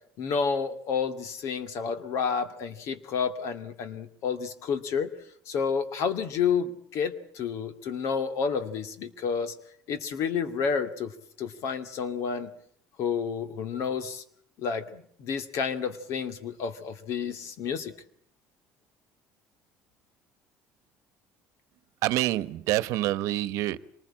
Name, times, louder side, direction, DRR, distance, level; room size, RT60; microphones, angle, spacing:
voice 1, 0.2-5.1 5.5-9.5 9.9-11.1 11.4-12.5 13.0-14.2 14.6-17.9, left 6 dB, 65° left, 10 dB, 2.4 m, -30 dB
voice 2, 22.0-23.8, right 15 dB, 75° right, 17 dB, 1.1 m, -27 dB
26.0 x 20.0 x 8.8 m, 0.65 s
cardioid pair, 120°, 5 cm